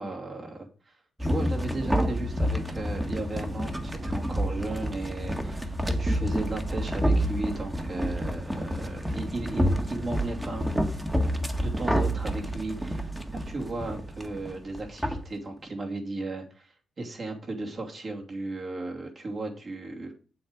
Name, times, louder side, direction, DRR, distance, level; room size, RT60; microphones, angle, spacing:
voice 1, 0.0-10.7 11.6-20.1, right 2 dB, 45° right, 1 dB, 2.8 m, -35 dB
sound 1, 1.2-15.2, equal, 10° right, 1.7 m, -29 dB
7.8 x 7.6 x 5.2 m, 0.38 s
cardioid pair, 90°, 0 cm